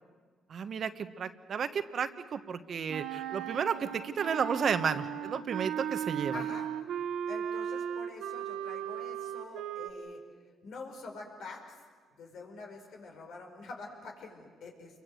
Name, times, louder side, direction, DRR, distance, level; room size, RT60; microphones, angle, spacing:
voice 1, 0.5-6.4, right 7 dB, 55° right, 10 dB, 1.3 m, -32 dB
Wind instrument woodwind instrument, 2.9-9.9, right 9 dB, 80° right, 1.2 m, -36 dB
voice 2, 6.3-6.7 7.3-10.2 10.6-11.8 12.2-15.0, left 3 dB, 75° left, 2 dB, 5.1 m, -46 dB
28.0 x 23.0 x 7.8 m, 1.5 s
cardioid pair, 90°, 0 cm